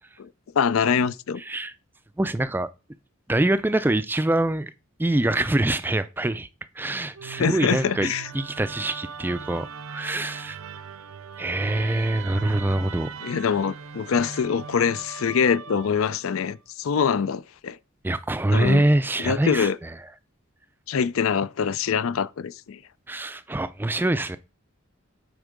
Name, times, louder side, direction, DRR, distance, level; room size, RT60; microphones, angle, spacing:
voice 1, 0.6-1.4 7.4-8.3 13.2-17.8 18.5-18.8 19.2-19.8 20.9-22.8, left 6 dB, 80° left, 0.4 m, -24 dB
voice 2, 1.4-1.7 2.2-2.7 3.3-4.7 5.0-6.5 6.8-10.6 11.4-13.1 18.0-20.0 23.1-24.4, right 1 dB, 10° right, 0.3 m, -24 dB
Musical instrument, 7.1-16.4, right 6 dB, 90° right, 0.6 m, -39 dB
8.0 x 4.5 x 5.1 m
head